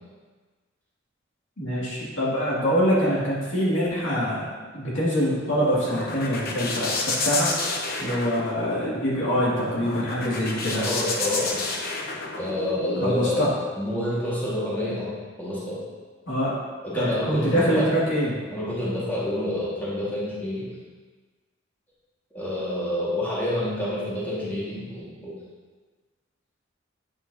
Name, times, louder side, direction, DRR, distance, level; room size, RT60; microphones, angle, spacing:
voice 1, 1.6-4.5 4.7-7.5 8.0-10.9 13.0-13.5 16.3-16.6 16.9-18.3, equal, 80° left, -7 dB, 2.4 m, -24 dB
sound 1, 5.1-13.0, left 3 dB, 55° left, 0.9 m, -30 dB
voice 2, 10.7-11.6 12.4-15.8 16.8-17.9 18.5-20.7 22.3-25.4, left 1 dB, 10° left, -9 dB, 1.8 m, -28 dB
8.5 x 7.0 x 2.8 m, 1.4 s
head